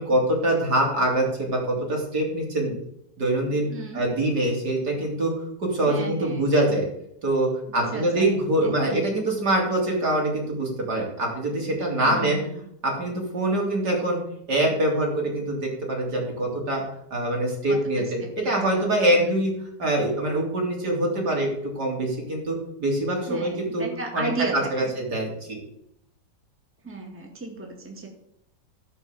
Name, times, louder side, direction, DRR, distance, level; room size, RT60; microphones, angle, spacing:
voice 1, 0.0-2.7 3.2-3.7 3.9-5.3 5.6-6.9 7.2-12.4 12.8-14.2 14.5-16.8 17.1-19.5 19.8-21.5 21.8-23.9 24.1-24.3 24.7-25.6, right 1 dB, 60° right, -1 dB, 3.7 m, -24 dB
voice 2, 3.7-4.0 5.9-6.5 7.7-9.0 12.1-12.7 17.7-18.0 18.4-19.5 23.3-24.9 26.8-28.1, right 3 dB, 5° right, 1 dB, 1.9 m, -35 dB
15.5 x 5.6 x 7.0 m, 0.74 s
omnidirectional pair, 1.9 m